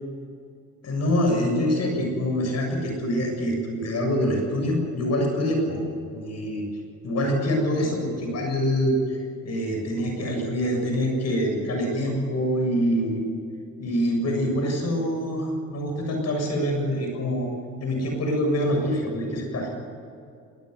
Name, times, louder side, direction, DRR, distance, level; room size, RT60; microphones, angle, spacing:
voice 1, 0.8-5.8 6.1-6.7 7.0-13.2 13.8-17.5 17.8-19.7, equal, 55° left, 2 dB, 7.3 m, -25 dB
21.0 x 19.5 x 8.1 m, 2.5 s
cardioid pair, 90°, 30 cm